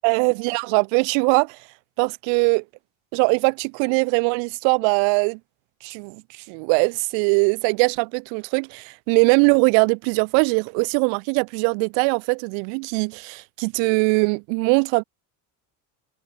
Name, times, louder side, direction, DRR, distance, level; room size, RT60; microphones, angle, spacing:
voice 1, 0.0-1.6 2.0-2.6 3.1-5.4 5.8-6.2 6.5-15.0, right 40 dB or more, 80° right, 1.1 m, -21 dB
cardioid pair, 115°, 44 cm